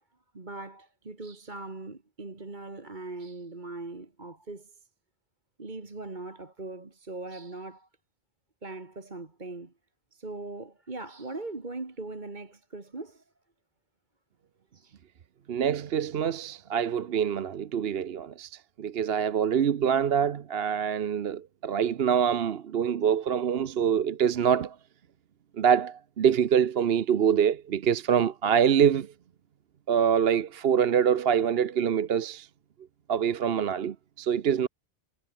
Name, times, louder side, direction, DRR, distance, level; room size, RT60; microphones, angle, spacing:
voice 1, 0.3-4.7 5.6-7.9 8.6-9.7 10.1-13.2 14.7-15.0, right 2 dB, 45° right, 2.3 m, -40 dB
voice 2, 15.5-24.8 25.6-29.1 29.9-32.5 33.1-34.7, right 8 dB, 65° right, 1.0 m, -25 dB
omnidirectional pair, 1.1 m